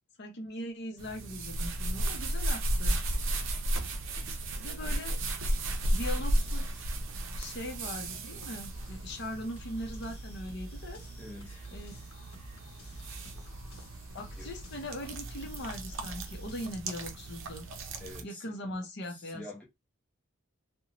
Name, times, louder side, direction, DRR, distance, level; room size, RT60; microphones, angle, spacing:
voice 1, 0.2-3.0 4.6-5.2 5.9-6.9 7.4-11.0 11.7-11.9 14.1-17.7 18.2-19.4, left 1 dB, 55° left, 0.7 m, -40 dB
sound 1, 1.0-18.2, right 1 dB, 65° right, 0.5 m, -35 dB
sound 2, 8.4-16.7, equal, 85° left, 0.8 m, -48 dB
voice 2, 11.2-11.7 14.4-14.5 18.0-18.7 19.1-19.6, left 2 dB, 5° left, 0.8 m, -47 dB
2.5 x 2.1 x 2.9 m
head